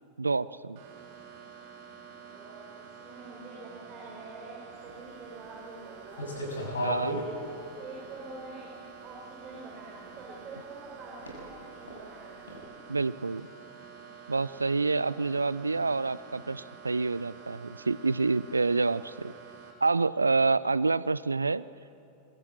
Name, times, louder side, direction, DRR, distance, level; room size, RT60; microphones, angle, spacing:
voice 1, 0.2-0.8 6.8-7.2 12.9-13.5 14.3-19.3 19.8-21.6, right 3 dB, 80° right, 19 dB, 0.5 m, -27 dB
sound 1, 0.8-19.7, right 6 dB, 50° right, 4.2 m, -49 dB
voice 2, 2.3-2.7 3.0-6.2 7.3-8.7 9.0-12.4, right 3 dB, 30° right, -2 dB, 5.4 m, -46 dB
sound 2, 4.7-4.9 5.4-5.7 6.1-7.2 8.0-8.1 9.0-9.1 11.2-11.4 11.8-11.9 12.5-12.6, equal, 70° left, 6.6 m, -33 dB
26.0 x 22.5 x 7.5 m, 2.7 s
figure-of-eight pair, 90°, 0 cm